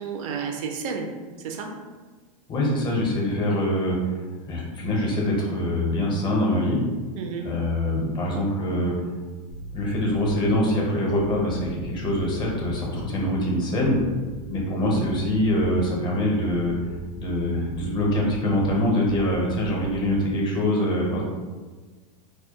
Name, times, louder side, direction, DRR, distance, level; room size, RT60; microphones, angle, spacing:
voice 1, 0.0-1.8 7.1-7.6, right 5 dB, 65° right, 4 dB, 0.4 m, -32 dB
voice 2, 2.5-4.2 4.5-6.8 7.4-8.9 9.7-14.0 14.5-16.7 17.2-21.2, left 1 dB, 25° left, -2 dB, 0.6 m, -24 dB
sound 1, 9.5-10.5 11.1-13.1 13.8-14.6 14.8-15.8 16.5-20.1, equal, 85° left, 0.4 m, -39 dB
2.2 x 2.1 x 2.7 m, 1.3 s
supercardioid pair, 135°, 18 cm